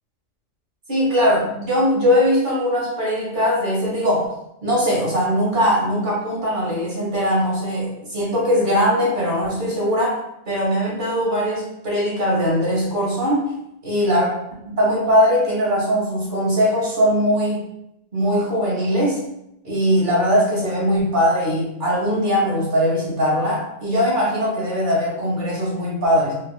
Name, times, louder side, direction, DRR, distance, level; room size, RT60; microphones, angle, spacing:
voice 1, 0.9-4.3 4.6-10.2 10.5-13.4 13.8-14.3 14.7-17.6 18.1-19.2 19.6-26.3, equal, 40° right, -5 dB, 1.2 m, -20 dB
3.2 x 2.8 x 2.3 m, 0.82 s
omnidirectional pair, 1.3 m